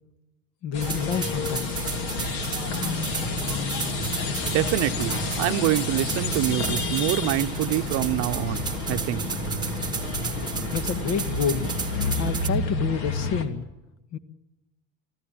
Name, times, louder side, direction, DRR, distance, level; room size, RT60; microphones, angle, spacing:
voice 1, 0.6-1.7 10.7-11.7 12.2-13.7 14.1-14.2, left 7 dB, 55° left, 1.7 m, -28 dB
sound 1, 0.7-13.4, left 3 dB, 75° left, 3.0 m, -29 dB
sound 2, 0.8-12.5, right 6 dB, 15° right, 1.3 m, -34 dB
voice 2, 4.5-9.3, right 17 dB, 60° right, 0.7 m, -26 dB
24.5 x 15.0 x 8.9 m
cardioid pair, 155°, 30 cm